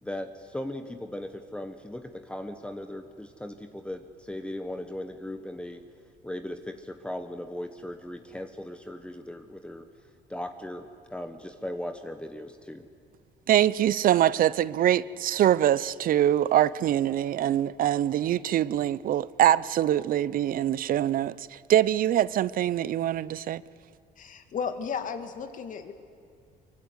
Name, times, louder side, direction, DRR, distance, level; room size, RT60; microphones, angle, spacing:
voice 1, 0.0-5.8 6.2-9.9 10.3-12.8, left 1 dB, 5° left, 7 dB, 1.2 m, -38 dB
voice 2, 13.5-23.6, right 11 dB, 55° right, 20 dB, 0.7 m, -24 dB
voice 3, 24.2-25.9, left 6 dB, 50° left, 8 dB, 2.3 m, -34 dB
24.0 x 23.5 x 9.7 m, 2.3 s
cardioid pair, 110°, 17 cm